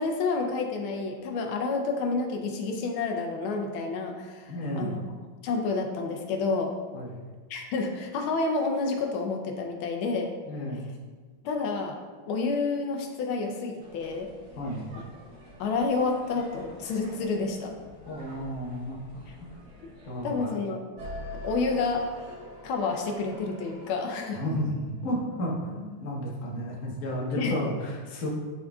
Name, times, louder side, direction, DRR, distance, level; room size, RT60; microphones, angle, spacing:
voice 1, 0.0-5.0 5.4-6.7 7.5-10.3 11.4-12.0 12.3-14.3 14.9-15.0 15.6-17.7 20.2-20.8 21.4-22.1 22.6-24.4 27.2-27.6, left 4 dB, 80° left, 2 dB, 1.5 m, -29 dB
voice 2, 4.5-4.9 6.9-7.2 10.5-10.9 14.6-14.9 18.1-19.6 20.1-20.5 24.3-28.3, equal, 45° left, -3 dB, 1.2 m, -32 dB
sound 1, 13.8-20.4, equal, 70° right, 2.1 m, -49 dB
sound 2, 21.0-25.3, left 1 dB, 20° right, 0.7 m, -42 dB
11.0 x 3.8 x 2.3 m, 1.4 s
omnidirectional pair, 2.3 m